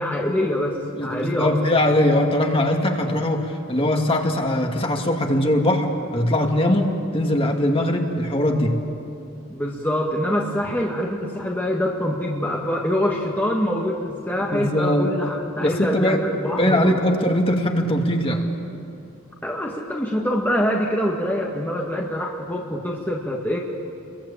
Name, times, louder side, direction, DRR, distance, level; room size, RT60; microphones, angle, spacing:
voice 1, 0.0-1.5 9.5-17.0 19.4-23.6, equal, 10° left, -2 dB, 2.1 m, -25 dB
voice 2, 0.9-8.8 14.5-15.1 15.6-16.2 16.6-18.4, left 1 dB, 25° left, 2 dB, 2.5 m, -21 dB
30.0 x 22.5 x 8.7 m, 2.7 s
head